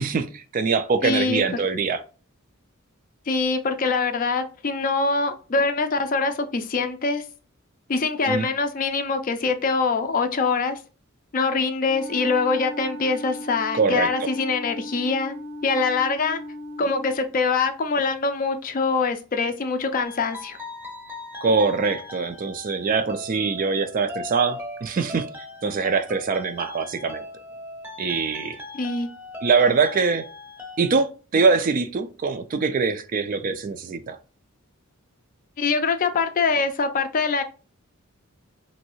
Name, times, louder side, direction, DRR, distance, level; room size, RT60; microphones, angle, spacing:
voice 1, 0.0-2.0 8.3-8.5 13.7-14.1 21.4-25.3 25.6-27.2 28.0-28.6 29.4-30.3 30.8-34.2, right 4 dB, 40° right, 0.3 m, -23 dB
voice 2, 1.0-1.6 3.3-7.2 7.9-10.8 11.3-15.3 15.6-16.4 16.8-20.6 28.7-29.1 35.6-37.4, left 4 dB, 40° left, 0.4 m, -24 dB
Wind instrument woodwind instrument, 11.8-17.2, equal, 85° right, 1.0 m, -37 dB
sound 1, 20.0-31.0, left 2 dB, 10° right, 0.6 m, -39 dB
3.1 x 2.6 x 2.9 m
head